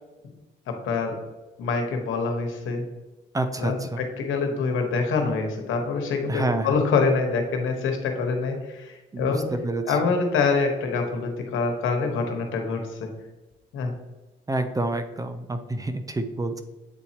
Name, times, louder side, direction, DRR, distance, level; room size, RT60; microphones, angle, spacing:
voice 1, 0.7-1.2 1.6-2.8 3.6-9.5 9.9-13.1 13.7-13.9, left 4 dB, 85° left, 4 dB, 1.2 m, -25 dB
voice 2, 3.3-4.0 6.3-6.8 9.1-9.4 9.6-10.0 14.5-16.6, right 2 dB, 15° right, 8 dB, 0.6 m, -28 dB
8.0 x 4.2 x 2.9 m, 1.1 s
cardioid pair, 90°, 20 cm